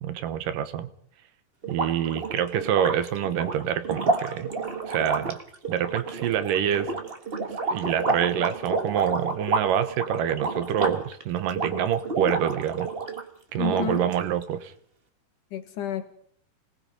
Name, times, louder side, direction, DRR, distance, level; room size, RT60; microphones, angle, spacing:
voice 1, 0.0-0.9 1.7-4.5 4.9-5.4 5.7-6.9 7.7-12.9 13.5-14.7, right 9 dB, 85° right, 2.8 m, -26 dB
sound 1, 1.6-13.2 13.6-14.4, right 3 dB, 40° right, 0.8 m, -30 dB
voice 2, 13.6-14.1 15.5-16.1, left 9 dB, 75° left, 2.7 m, -31 dB
26.0 x 19.0 x 5.4 m
omnidirectional pair, 3.8 m